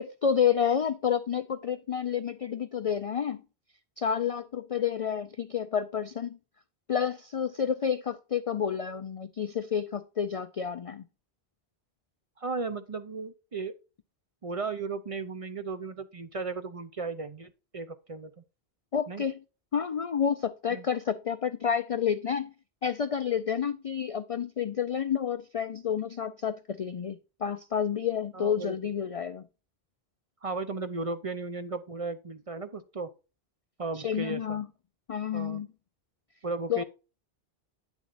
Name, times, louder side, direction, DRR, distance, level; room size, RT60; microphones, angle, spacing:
voice 1, 0.0-3.4 4.0-6.4 6.9-11.0 18.9-19.4 19.7-22.5 22.8-29.5 33.9-34.7 35.1-35.7 36.7-36.8, left 7 dB, 55° left, 0.4 m, -29 dB
voice 2, 12.4-13.7 14.4-18.4 19.1-19.2 20.7-20.9 28.3-28.9 30.4-33.1 33.8-34.6 35.3-35.6 36.4-36.8, right 3 dB, 40° right, 0.6 m, -35 dB
9.0 x 7.1 x 2.5 m
omnidirectional pair, 1.1 m